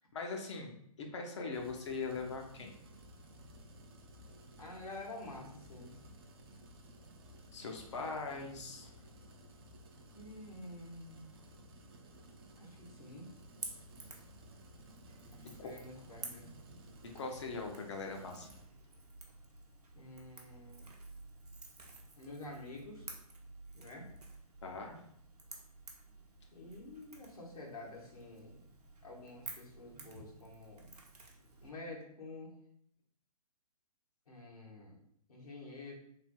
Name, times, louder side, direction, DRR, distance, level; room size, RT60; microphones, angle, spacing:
voice 1, 0.1-2.7 7.5-8.9 15.6-15.7 16.0-16.1 17.0-18.5 24.6-25.0, left 4 dB, 50° left, 2 dB, 0.6 m, -41 dB
sound 1, 1.5-18.6, equal, 40° right, 0.5 m, -56 dB
voice 2, 4.6-5.9 7.9-8.4 10.1-11.3 12.6-13.3 15.3-16.5 19.9-20.9 22.2-23.0 23.7-24.1 26.5-28.6 29.0-30.9 31.6-32.5 34.3-35.0 35.3-35.9, left 2 dB, 75° left, -3 dB, 1.1 m, -49 dB
Crackle / Crack, 13.4-31.7, right 3 dB, 90° right, 0.7 m, -52 dB
3.3 x 2.5 x 2.2 m, 0.70 s
figure-of-eight pair, 135°, 19 cm